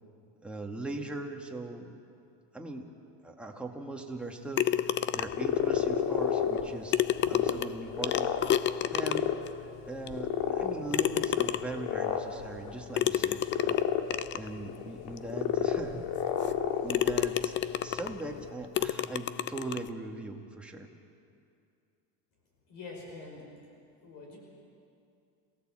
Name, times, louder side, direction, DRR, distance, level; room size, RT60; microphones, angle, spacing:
voice 1, 0.4-1.9 2.5-2.9 3.2-7.0 7.3-8.4 8.9-9.3 9.9-13.8 14.3-16.0 16.8-17.5 17.8-20.9, right 2 dB, 5° right, 0 dB, 1.9 m, -40 dB
sound 1, 4.6-5.5 6.6-6.7 6.9-9.5 10.1-10.2 10.9-11.9 13.0-14.5 15.2-15.3 15.8-15.9 16.4-16.6 16.9-18.2 18.8-19.9, left 10 dB, 30° left, 0.5 m, -30 dB
sound 2, 5.1-18.5, left 9 dB, 70° left, 2.2 m, -32 dB
voice 2, 22.7-23.5 24.0-24.4, left 3 dB, 50° left, 0 dB, 5.6 m, -45 dB
27.0 x 17.5 x 7.7 m, 2.5 s
supercardioid pair, 135°, 40 cm